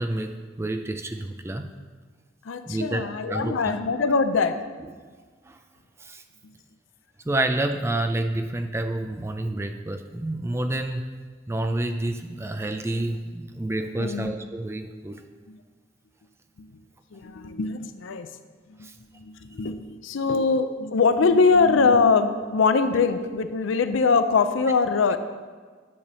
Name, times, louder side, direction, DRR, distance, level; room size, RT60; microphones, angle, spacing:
voice 1, 0.0-1.7 2.7-3.7 5.5-5.6 6.0-6.2 7.2-11.0 11.5-15.2 18.8-18.9, right 1 dB, 15° right, 6 dB, 0.4 m, -29 dB
voice 2, 2.4-4.6 14.0-14.3 15.5-15.6 16.6-16.7 17.1-18.3 18.7-18.9 19.1-25.2, left 4 dB, 80° left, 10 dB, 0.5 m, -22 dB
9.8 x 3.4 x 6.7 m, 1.5 s
head